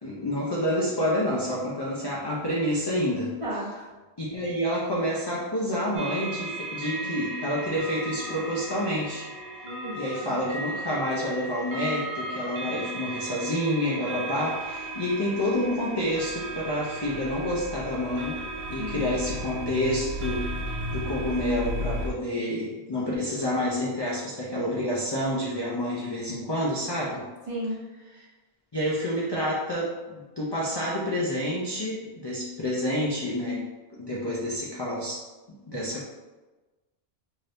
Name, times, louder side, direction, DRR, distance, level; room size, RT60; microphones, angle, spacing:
voice 1, 0.0-3.3 4.2-9.3 9.9-18.4 18.7-20.5 20.9-27.3 28.7-33.6 33.9-36.1, left 1 dB, 40° left, -6 dB, 0.3 m, -28 dB
voice 2, 3.4-3.9 9.6-10.4 18.8-19.1 27.5-27.8, right 1 dB, 35° right, -7 dB, 0.8 m, -34 dB
sound 1, 5.9-22.1, right 1 dB, 70° right, 0.9 m, -35 dB
2.7 x 2.6 x 3.3 m, 1.2 s
omnidirectional pair, 1.1 m